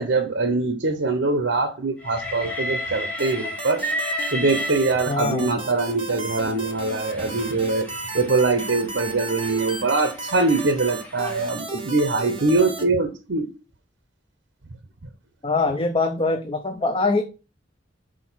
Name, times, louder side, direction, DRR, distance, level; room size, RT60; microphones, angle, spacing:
voice 1, 0.0-13.5, right 3 dB, 65° right, 0.8 m, -23 dB
Train, 2.0-5.4 6.2-11.5, equal, 10° left, 1.6 m, -33 dB
sound 1, 3.2-12.8, right 3 dB, 30° right, 1.6 m, -34 dB
voice 2, 5.1-5.5 15.4-17.2, left 3 dB, 30° left, 0.6 m, -23 dB
6.2 x 4.6 x 6.0 m
head